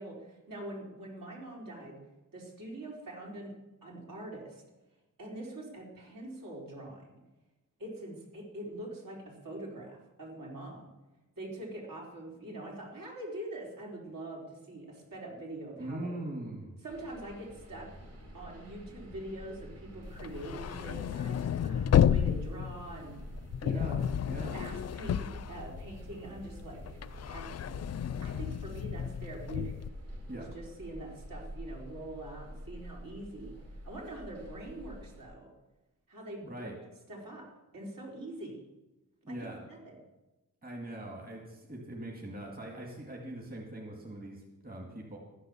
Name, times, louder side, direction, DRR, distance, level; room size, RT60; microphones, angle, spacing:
voice 1, 0.0-2.0 2.3-3.5 3.8-4.6 5.2-7.2 7.8-10.9 11.4-16.2 16.8-17.9 18.3-23.2 23.6-24.0 24.5-26.8 27.1-27.5 28.2-29.7 30.3-33.5 33.8-35.5 36.1-36.7 37.1-37.4 37.7-38.6 39.3-40.0, right 1 dB, 75° right, -2 dB, 4.6 m, -44 dB
voice 2, 15.8-16.7 23.6-24.5 30.3-30.5 36.4-36.7 39.2-39.6 40.6-45.2, right 1 dB, 25° right, -1 dB, 2.2 m, -42 dB
sound 1, 16.9-35.2, equal, 45° right, 2.7 m, -47 dB
sound 2, 20.1-26.2 26.6-29.9, left 9 dB, 50° left, 0.4 m, -31 dB
13.0 x 9.8 x 7.1 m, 1.0 s
wide cardioid pair, 155°, 34 cm